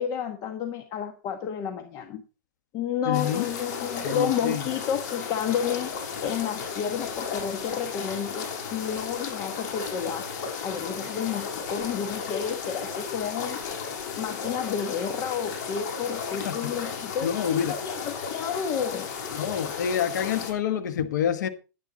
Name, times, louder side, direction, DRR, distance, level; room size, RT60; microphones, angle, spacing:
voice 1, 0.0-2.2 2.7-5.9 6.2-10.2 10.6-13.6 14.2-19.1 19.4-19.5, left 8 dB, 40° left, 1.4 m, -31 dB
voice 2, 3.1-3.5 4.0-4.6 16.4-16.5 17.2-17.7 19.3-21.5, left 9 dB, 90° left, 1.3 m, -27 dB
sound 1, 3.1-20.5, left 6 dB, 65° left, 6.4 m, -34 dB
11.0 x 10.0 x 4.0 m
supercardioid pair, 140°, 9 cm